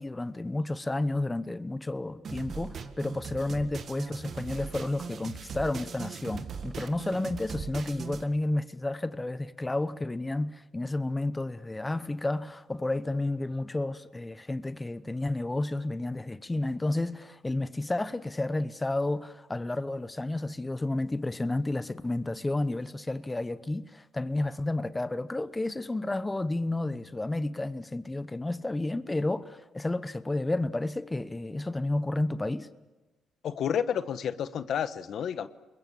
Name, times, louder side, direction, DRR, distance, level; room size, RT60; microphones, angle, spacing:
voice 1, 0.0-32.7, left 2 dB, 15° left, 1.0 m, -31 dB
sound 1, 2.2-8.2, right 6 dB, 55° right, 1.9 m, -39 dB
voice 2, 33.4-35.5, left 8 dB, 65° left, 1.1 m, -30 dB
28.5 x 21.5 x 7.3 m
cardioid pair, 90°, 0 cm